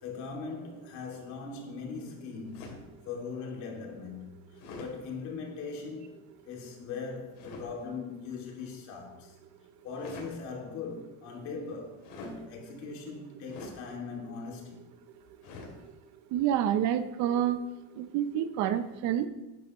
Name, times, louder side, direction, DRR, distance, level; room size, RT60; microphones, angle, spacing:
voice 1, 0.0-6.1 6.4-9.3 9.8-14.8, left 4 dB, 55° left, 2.5 m, -40 dB
sound 1, 2.5-2.9 4.6-4.9 7.3-7.7 9.9-10.4 12.0-12.4 13.5-13.8 15.4-15.8, left 2 dB, 70° left, 3.0 m, -44 dB
voice 2, 16.3-17.6 18.0-19.3, right 10 dB, 55° right, 0.6 m, -28 dB
12.0 x 9.8 x 3.0 m
cardioid pair, 170°, 35 cm